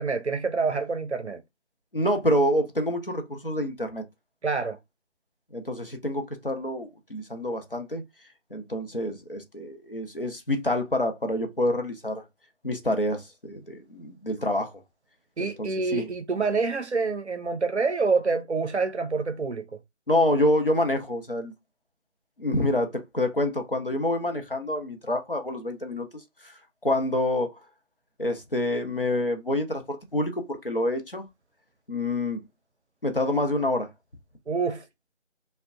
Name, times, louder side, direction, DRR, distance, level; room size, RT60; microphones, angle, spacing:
voice 1, 0.0-1.4 4.4-4.8 15.4-19.7 34.5-34.8, right 4 dB, 65° right, 0.6 m, -27 dB
voice 2, 1.9-4.0 5.5-8.0 8.5-12.2 12.6-14.7 15.4-16.1 20.1-21.5 22.4-26.1 26.4-26.5 26.8-27.5 28.2-31.2 31.9-32.4 33.0-33.9, left 1 dB, 50° left, 0.6 m, -27 dB
2.7 x 2.1 x 2.4 m
figure-of-eight pair, 180°, 37 cm